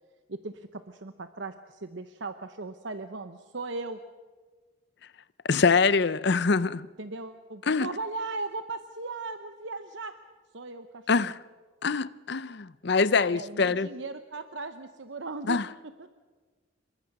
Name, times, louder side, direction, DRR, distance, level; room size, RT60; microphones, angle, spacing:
voice 1, 0.3-4.1 7.0-10.2 10.5-11.3 13.3-15.6 16.0-16.1, right 3 dB, 65° right, 0.9 m, -38 dB
voice 2, 5.4-6.9 7.7-7.9 11.1-11.4 11.8-13.9 15.5-15.7, left 4 dB, 55° left, 0.6 m, -24 dB
27.0 x 22.5 x 6.0 m
head